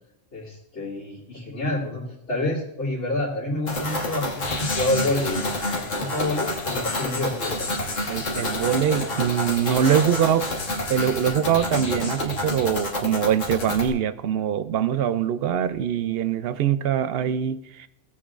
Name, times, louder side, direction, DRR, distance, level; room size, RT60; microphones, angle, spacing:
voice 1, 0.3-5.4 5.7-7.8, left 1 dB, 70° left, -9 dB, 2.8 m, -28 dB
sound 1, 3.7-13.9, left 2 dB, 90° left, 1.8 m, -28 dB
voice 2, 8.1-10.5 10.9-17.9, right 9 dB, 65° right, 13 dB, 0.7 m, -23 dB
16.5 x 8.5 x 2.5 m, 0.83 s
omnidirectional pair, 1.3 m